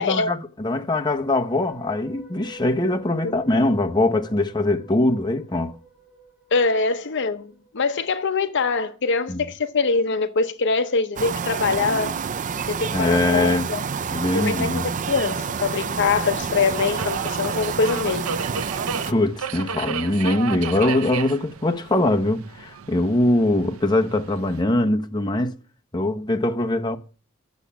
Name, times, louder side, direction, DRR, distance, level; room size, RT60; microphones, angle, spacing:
voice 1, 0.0-5.7 9.3-9.4 12.9-13.7 14.1-14.9 19.1-25.5 25.9-27.0, left 1 dB, 20° left, 1.0 m, -22 dB
sound 1, 1.1-8.3, right 2 dB, 5° right, 5.4 m, -48 dB
voice 2, 6.5-12.1 12.7-13.8 14.3-18.3, left 4 dB, 60° left, 0.8 m, -23 dB
sound 2, 11.2-19.1, right 6 dB, 40° right, 0.5 m, -28 dB
Subway metro underground, 14.1-24.6, right 6 dB, 80° right, 0.7 m, -35 dB
10.5 x 7.3 x 7.0 m
head